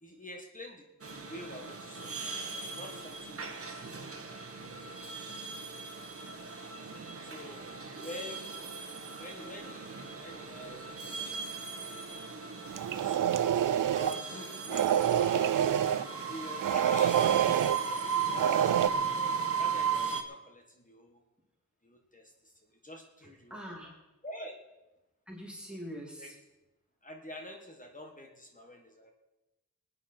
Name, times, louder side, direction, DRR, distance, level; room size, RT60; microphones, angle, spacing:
voice 1, 0.0-3.8 6.9-7.7 8.0-8.5 9.2-12.0 12.9-15.9 16.3-18.0 19.0-21.2 21.8-23.6 24.2-24.6 26.2-26.3 27.0-29.1, left 1 dB, 25° left, 2 dB, 1.6 m, -47 dB
sound 1, 1.0-20.2, right 5 dB, 45° right, 1.4 m, -37 dB
sound 2, 12.7-14.2 14.7-16.0 16.6-17.8 18.3-18.9, right 10 dB, 85° right, 0.5 m, -27 dB
voice 2, 17.2-17.6 23.5-23.9 25.3-26.4, equal, 5° right, -2 dB, 2.6 m, -43 dB
21.5 x 9.5 x 4.5 m, 1.0 s
wide cardioid pair, 130°, 31 cm